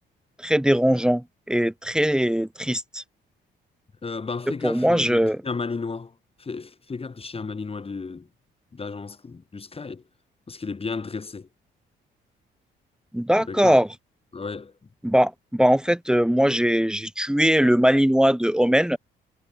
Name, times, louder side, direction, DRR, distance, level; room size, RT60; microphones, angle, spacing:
voice 1, 0.4-3.0 4.6-5.4 13.1-13.9 15.0-19.0, equal, 5° right, 2.9 m, -20 dB
voice 2, 4.0-8.3 8.7-10.0 10.5-11.5 13.4-13.8 14.3-14.7, left 4 dB, 30° left, 3.0 m, -33 dB
cardioid pair, 90°, 20 cm